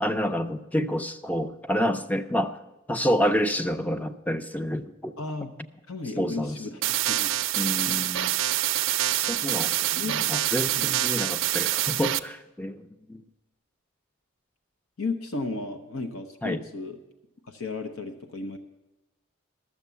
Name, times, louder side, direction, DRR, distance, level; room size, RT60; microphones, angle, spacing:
voice 1, 0.0-2.6 2.9-5.1 6.2-6.6 7.6-8.3 9.1-9.7 10.0-13.2 16.4-16.6, equal, 5° left, 9 dB, 0.4 m, -28 dB
voice 2, 5.2-5.5 5.9-6.8 7.1-7.4 7.9-8.0 9.9-10.2 10.8-11.0 15.0-17.0 17.4-18.6, left 3 dB, 75° left, 6 dB, 0.8 m, -34 dB
sound 1, 6.8-12.2, right 13 dB, 60° right, 0.4 m, -26 dB
12.5 x 7.3 x 6.8 m, 1.0 s
head